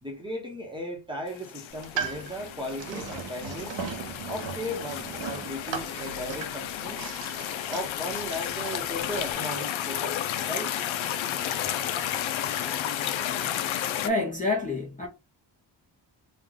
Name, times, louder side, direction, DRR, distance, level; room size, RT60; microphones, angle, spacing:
voice 1, 0.0-3.8 4.3-7.0 7.7-10.7, equal, 10° right, 0.8 m, -36 dB
sound 1, 1.3-14.1, left 10 dB, 90° left, 0.6 m, -32 dB
sound 2, 1.7-9.3, right 6 dB, 75° right, 0.8 m, -38 dB
voice 2, 14.0-15.1, left 2 dB, 15° left, 0.5 m, -27 dB
3.2 x 2.2 x 3.7 m
wide cardioid pair, 160°, 45 cm